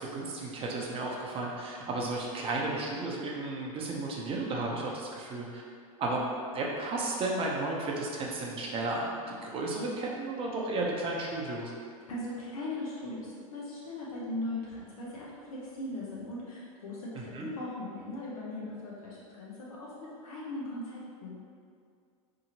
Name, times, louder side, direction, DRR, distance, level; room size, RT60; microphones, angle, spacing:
voice 1, 0.0-5.6 6.0-6.2 6.5-11.7 17.2-17.5, right 2 dB, 30° right, -2 dB, 0.5 m, -33 dB
voice 2, 12.1-21.4, left 1 dB, 80° left, -6 dB, 0.7 m, -39 dB
2.7 x 2.7 x 2.6 m, 2.2 s
hypercardioid pair, 100°, 18 cm